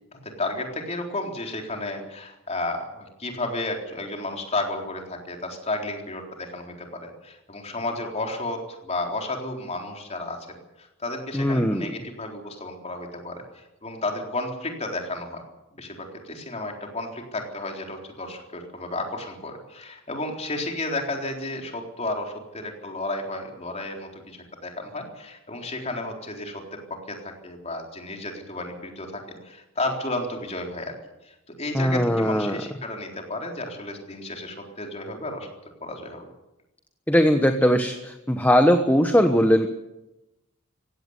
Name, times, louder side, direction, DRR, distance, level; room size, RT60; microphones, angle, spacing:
voice 1, 0.1-10.4 10.8-15.4 15.7-31.0 31.2-35.5 35.8-36.3, left 2 dB, 30° left, 2 dB, 3.9 m, -32 dB
voice 2, 11.3-11.9 31.7-32.6 37.1-39.7, equal, 10° left, 6 dB, 1.1 m, -20 dB
17.0 x 16.5 x 9.6 m, 0.94 s
head